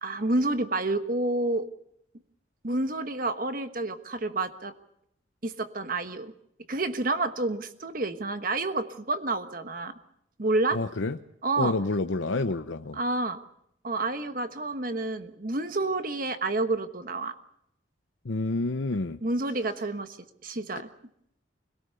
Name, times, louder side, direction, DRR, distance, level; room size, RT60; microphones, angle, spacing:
voice 1, 0.0-1.7 2.6-4.7 5.4-6.3 6.7-9.9 10.4-10.8 11.4-11.7 12.9-13.4 13.8-17.3 19.2-20.2 20.4-20.9, right 2 dB, 45° right, 9 dB, 1.3 m, -29 dB
voice 2, 10.7-11.2 11.6-13.0 18.2-19.2 20.7-20.8, left 3 dB, 80° left, 8 dB, 0.7 m, -28 dB
25.0 x 17.5 x 6.8 m, 0.75 s
head